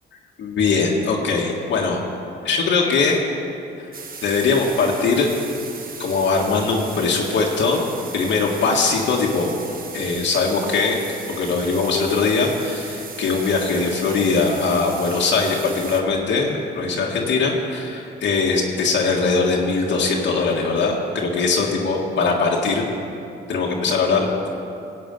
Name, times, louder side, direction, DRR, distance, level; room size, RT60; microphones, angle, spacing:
voice 1, 0.4-2.0 2.4-3.2 3.8-3.9 4.2-5.3 6.0-7.8 8.1-9.5 9.9-11.0 11.4-22.8 23.5-24.5, left 4 dB, 70° left, -2 dB, 1.8 m, -21 dB
sound 1, 3.9-16.0, right 5 dB, 45° right, 1.4 m, -37 dB
17.0 x 8.4 x 5.4 m, 2.6 s
cardioid pair, 90°, 20 cm